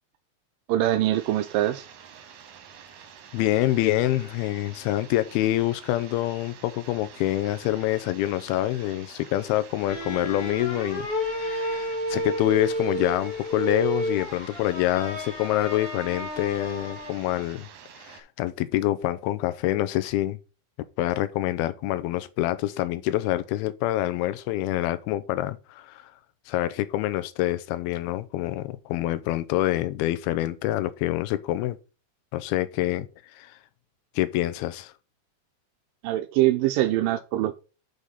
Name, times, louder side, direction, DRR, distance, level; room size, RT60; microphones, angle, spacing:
voice 1, 0.7-1.9 36.0-37.5, right 14 dB, 85° right, 2.0 m, -23 dB
sound 1, 1.1-18.2, right 8 dB, 60° right, 2.3 m, -48 dB
voice 2, 3.3-17.7 18.0-20.4 21.0-26.1 26.5-31.8 32.3-33.1 33.3-33.5 34.2-34.9, left 14 dB, 85° left, 2.5 m, -26 dB
sound 2, 9.8-17.3, equal, 45° left, 1.1 m, -31 dB
6.4 x 5.1 x 5.5 m
omnidirectional pair, 4.5 m